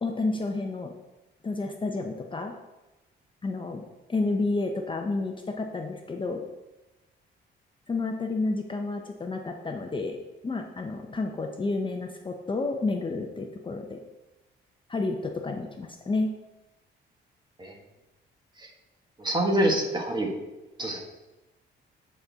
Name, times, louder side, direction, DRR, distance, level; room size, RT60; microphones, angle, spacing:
voice 1, 0.0-0.9 1.4-2.5 3.4-3.8 4.1-6.4 7.9-10.2 10.4-14.0 14.9-16.3, left 3 dB, 25° left, 3 dB, 0.7 m, -30 dB
voice 2, 19.2-20.3 20.8-21.0, right 1 dB, 20° right, 1 dB, 1.5 m, -26 dB
10.5 x 4.3 x 3.6 m, 1.1 s
cardioid pair, 90°, 20 cm